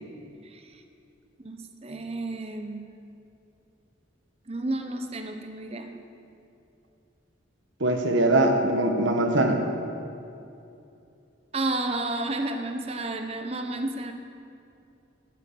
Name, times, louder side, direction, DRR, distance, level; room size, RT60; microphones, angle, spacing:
voice 1, 0.4-0.8 1.4-2.8 4.5-5.9 11.5-14.1, right 2 dB, 30° right, 5 dB, 0.9 m, -31 dB
voice 2, 7.8-9.6, right 2 dB, 80° right, 4 dB, 1.3 m, -22 dB
12.5 x 9.1 x 8.5 m, 2.7 s
head